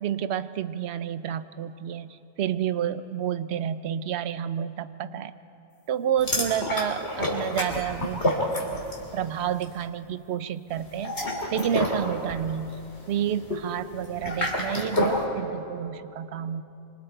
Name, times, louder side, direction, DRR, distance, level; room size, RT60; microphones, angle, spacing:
voice 1, 0.0-5.3 5.9-8.2 9.1-11.2 11.5-12.8 13.1-16.6, right 9 dB, 70° right, 13 dB, 0.9 m, -29 dB
sound 1, 6.2-9.1 9.4-9.7 10.9-15.2, left 1 dB, 70° left, 3.4 m, -29 dB
26.0 x 25.5 x 4.6 m, 2.8 s
omnidirectional pair, 1.2 m